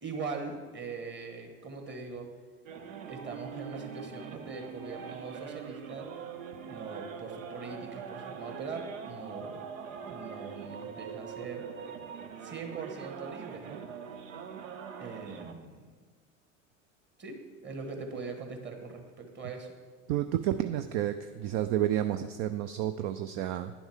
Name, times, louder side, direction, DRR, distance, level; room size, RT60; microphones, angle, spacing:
voice 1, 0.0-2.3 3.1-6.1 6.7-9.7 10.1-11.7 12.4-13.8 15.0-15.9 17.2-19.7, right 4 dB, 30° right, 3 dB, 1.6 m, -41 dB
sound 1, 2.7-15.5, right 6 dB, 75° right, 0.8 m, -43 dB
voice 2, 20.1-23.7, right 12 dB, 45° right, 10 dB, 0.4 m, -30 dB
10.0 x 7.1 x 3.6 m, 1.5 s
hypercardioid pair, 80°, 39 cm